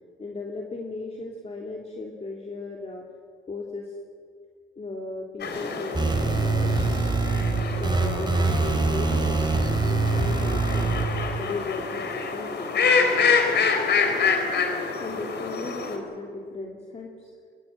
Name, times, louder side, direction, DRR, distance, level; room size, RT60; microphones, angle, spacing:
voice 1, 0.2-3.0 3.5-4.0 4.8-7.0 7.8-10.9 11.4-13.6 15.0-17.3, left 3 dB, 35° left, 0 dB, 3.0 m, -36 dB
sound 1, 5.4-16.0, left 5 dB, 60° left, 4.0 m, -27 dB
sound 2, 5.9-11.4, right 3 dB, 20° right, 2.7 m, -24 dB
21.5 x 21.5 x 7.9 m, 2.1 s
cardioid pair, 90°, 20 cm